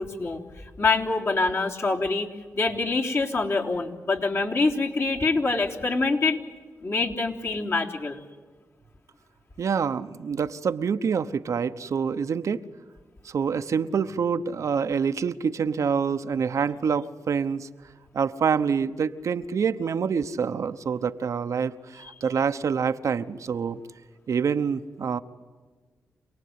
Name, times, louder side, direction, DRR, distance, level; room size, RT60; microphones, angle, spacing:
voice 1, 0.0-2.3 2.5-6.4 6.8-8.2 22.0-22.1, left 3 dB, 50° left, 0 dB, 3.4 m, -25 dB
voice 2, 9.6-12.6 13.2-17.7 18.1-23.8 24.3-25.2, right 6 dB, 65° right, 10 dB, 1.0 m, -26 dB
27.0 x 19.0 x 9.5 m, 1.4 s
cardioid pair, 55°, 6 cm